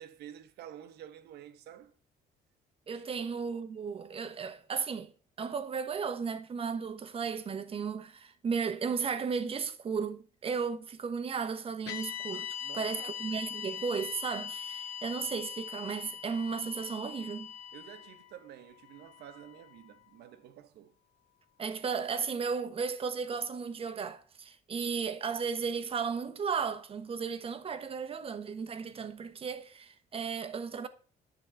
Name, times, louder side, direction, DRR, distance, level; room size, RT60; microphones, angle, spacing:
voice 1, 0.0-1.9 2.9-3.0 12.6-13.2 17.7-20.9, right 10 dB, 75° right, 1.1 m, -50 dB
voice 2, 2.9-5.1 5.4-12.5 12.7-17.5 21.6-30.9, right 6 dB, 35° right, 1.1 m, -35 dB
sound 1, 11.9-20.2, left 8 dB, 85° left, 1.5 m, -42 dB
10.0 x 4.1 x 7.1 m
cardioid pair, 110°, 17 cm